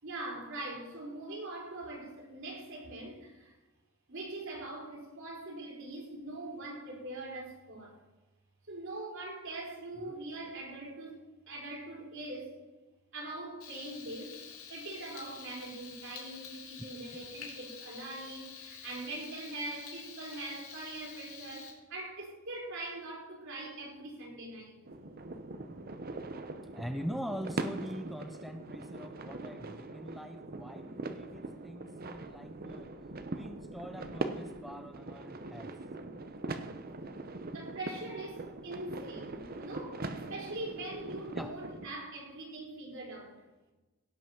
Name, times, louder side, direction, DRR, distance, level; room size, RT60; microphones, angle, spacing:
voice 1, 0.0-3.5 4.1-8.0 8.7-11.2 11.5-12.7 13.1-14.4 14.7-24.8 37.5-43.4, right 2 dB, 60° right, -1 dB, 4.4 m, -42 dB
Frying (food), 13.6-21.7, left 6 dB, 70° left, 2.9 m, -48 dB
sound 1, 24.9-41.9, right 2 dB, 45° right, 0.9 m, -41 dB
voice 2, 26.7-32.9 33.3-35.7 41.3-41.6, equal, ahead, 7 dB, 0.5 m, -43 dB
16.5 x 6.0 x 7.2 m, 1.1 s
head